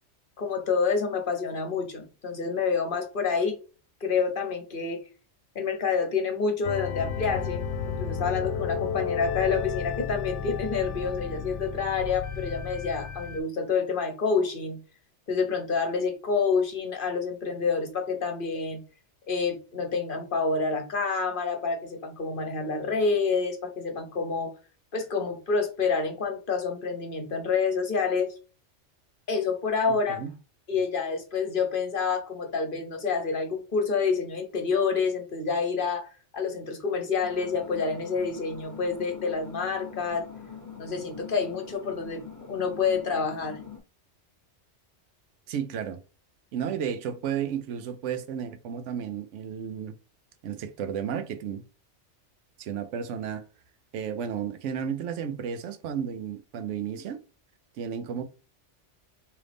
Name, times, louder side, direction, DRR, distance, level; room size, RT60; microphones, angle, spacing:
voice 1, 0.4-3.6 4.0-5.0 5.5-7.6 8.0-14.8 15.3-18.8 19.3-24.5 24.9-28.3 29.3-30.2 30.7-40.3 40.8-42.2 42.5-43.6, left 5 dB, 50° left, 0.9 m, -28 dB
sound 1, 6.6-13.4, left 7 dB, 80° left, 0.9 m, -33 dB
voice 2, 29.9-30.3 45.5-46.0 46.5-50.0 50.4-51.6 52.6-53.4 53.9-57.2 57.8-58.2, right 8 dB, 90° right, 0.9 m, -33 dB
sound 2, 37.2-43.8, left 6 dB, 15° left, 0.9 m, -44 dB
3.7 x 2.9 x 3.4 m
omnidirectional pair, 1.2 m